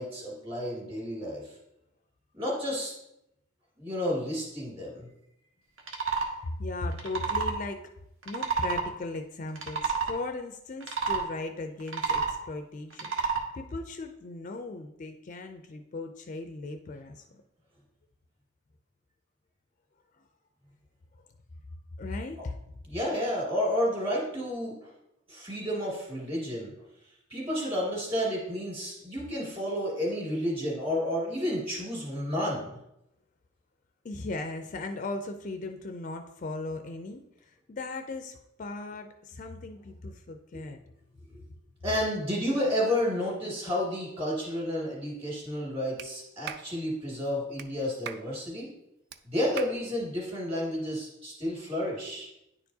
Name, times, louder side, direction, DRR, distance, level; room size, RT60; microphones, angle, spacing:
voice 1, 0.0-1.5 2.3-2.9 3.8-5.1 22.9-24.9 25.3-26.7 27.3-32.8 40.5-40.6 41.3-41.4 41.8-48.7 49.3-52.3, equal, 25° right, -4 dB, 2.2 m, -31 dB
sound 1, 5.8-6.3 6.9-7.6 8.2-8.9 9.5-10.2 10.8-11.2 11.8-12.4 12.9-13.4, right 5 dB, 75° right, 1.0 m, -29 dB
voice 2, 6.6-7.8 8.3-17.2 22.0-22.6 34.0-40.8, left 2 dB, 35° left, 6 dB, 0.3 m, -37 dB
Clapping, 46.0-46.1 46.5-46.7 47.6-47.7 48.1-48.3 49.1-49.2 49.6-49.8, right 8 dB, 50° right, 0.3 m, -39 dB
9.7 x 4.5 x 2.7 m, 0.85 s
head